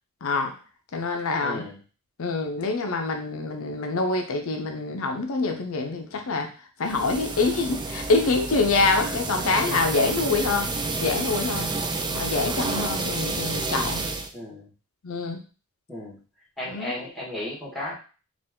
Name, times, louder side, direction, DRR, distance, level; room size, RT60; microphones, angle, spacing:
voice 1, 0.2-0.5 0.9-1.7 2.2-6.5 6.8-10.7 11.0-11.7 12.1-14.1 15.0-15.4 16.7-16.9, left 3 dB, 70° left, 4 dB, 0.6 m, -25 dB
voice 2, 1.4-1.8 14.3-14.7 15.9-16.2 16.6-17.9, left 1 dB, ahead, -5 dB, 1.5 m, -34 dB
sound 1, 6.8-14.3, right 3 dB, 20° right, 0.4 m, -30 dB
4.4 x 2.5 x 3.6 m, 0.36 s
head